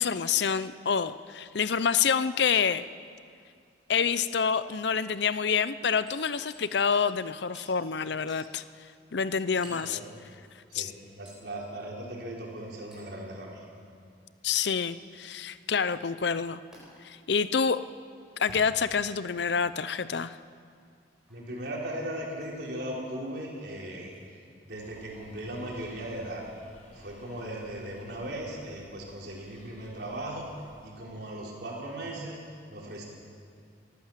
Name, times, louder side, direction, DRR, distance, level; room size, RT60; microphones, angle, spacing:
voice 1, 0.0-2.9 3.9-8.6 9.1-10.0 10.7-10.9 14.4-16.6 17.0-17.8 18.4-20.4, left 6 dB, 65° left, 14 dB, 0.6 m, -27 dB
Hammer, 6.1-6.7 6.9-7.1 7.5-7.7 8.3-8.5 9.6-9.9 11.3-11.4 12.9-13.1 14.5-14.7 16.7-16.8 18.3-19.1 19.9-20.0 21.3-21.5 22.3-22.5 24.1-24.2, equal, 5° right, 7.2 m, -50 dB
voice 2, 11.2-13.6 21.3-24.1 24.6-26.4 26.9-30.5 30.8-32.4 32.7-33.1, right 1 dB, 60° right, -3 dB, 4.8 m, -38 dB
sound 1, 24.7-30.9, equal, 40° left, 4.6 m, -56 dB
24.0 x 14.5 x 7.5 m, 2.2 s
head